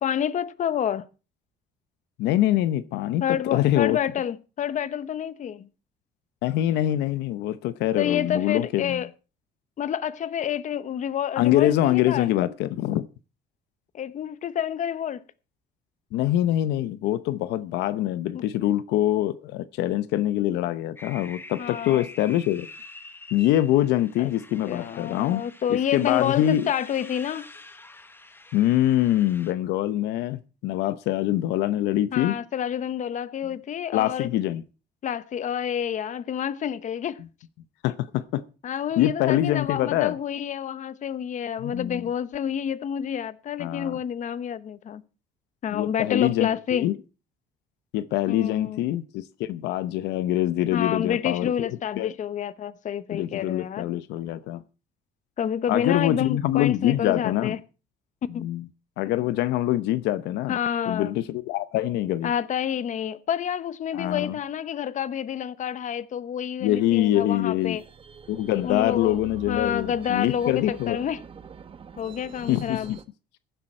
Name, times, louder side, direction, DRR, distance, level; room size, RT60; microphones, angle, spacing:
voice 1, 0.0-1.1 3.2-5.7 8.0-9.1 9.8-12.3 13.9-15.2 18.3-18.4 21.6-22.1 24.2-24.3 24.7-27.5 32.1-34.3 35.0-37.2 38.6-45.0 45.6-46.9 48.3-48.9 50.7-53.8 55.4-57.6 58.3-58.5 60.5-61.1 62.2-67.8 68.6-69.2 69.5-71.2 72.0-72.9, left 9 dB, 45° left, 0.9 m, -28 dB
voice 2, 2.2-4.0 6.4-9.0 11.4-13.1 16.1-22.7 23.3-25.4 25.7-26.7 28.5-32.3 33.9-34.6 37.8-38.4 39.0-40.2 41.6-42.1 43.6-44.0 45.7-46.9 47.9-51.7 52.0-52.1 53.1-54.6 55.7-57.5 58.3-58.6 59.0-60.6 60.9-62.3 63.9-64.4 66.6-67.8 68.3-71.0 72.5-73.0, left 13 dB, 85° left, 0.8 m, -24 dB
sound 1, 21.0-29.5, left 2 dB, 15° left, 1.3 m, -46 dB
sound 2, 67.6-73.0, right 6 dB, 30° right, 1.0 m, -45 dB
15.0 x 11.5 x 4.4 m
cardioid pair, 110°, 17 cm